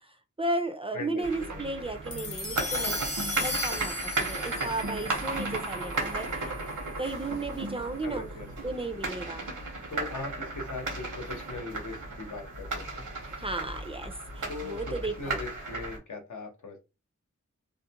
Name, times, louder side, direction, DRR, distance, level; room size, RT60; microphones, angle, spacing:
voice 1, 0.0-3.0 3.4-6.5 7.0-8.2 8.6-9.5 13.3-15.4, right 2 dB, 20° right, 5 dB, 0.3 m, -34 dB
voice 2, 0.9-1.6 8.0-8.7 9.9-13.0 14.5-16.8, left 3 dB, 80° left, 3 dB, 0.8 m, -40 dB
sound 1, 1.2-8.6, right 2 dB, 65° right, 0.6 m, -44 dB
sound 2, 1.2-16.0, right 2 dB, 85° right, 0.9 m, -35 dB
sound 3, 2.1-6.6, left 2 dB, 50° left, 0.8 m, -36 dB
2.4 x 2.1 x 2.8 m, 0.28 s
wide cardioid pair, 70°, 30 cm